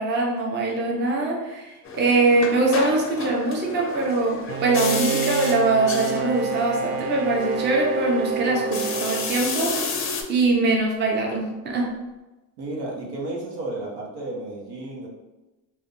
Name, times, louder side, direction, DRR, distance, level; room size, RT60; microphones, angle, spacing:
voice 1, 0.0-9.9 10.3-11.9, right 2 dB, 25° right, -2 dB, 0.7 m, -22 dB
sound 1, 1.8-10.2, left 4 dB, 35° left, 0.5 m, -32 dB
Bowed string instrument, 4.5-10.1, right 6 dB, 70° right, 0.5 m, -29 dB
voice 2, 12.6-15.1, right 2 dB, 85° right, -2 dB, 1.0 m, -32 dB
2.6 x 2.3 x 3.7 m, 1.1 s
cardioid pair, 115°, 40 cm